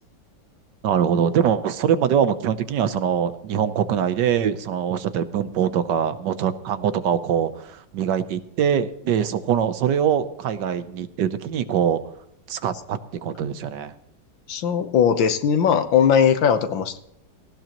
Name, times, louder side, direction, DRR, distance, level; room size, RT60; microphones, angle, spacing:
voice 1, 0.8-12.0 12.5-13.9, right 8 dB, 70° right, 12 dB, 1.4 m, -23 dB
voice 2, 14.5-17.0, left 7 dB, 80° left, 9 dB, 1.7 m, -19 dB
18.0 x 16.5 x 3.0 m, 0.77 s
omnidirectional pair, 2.1 m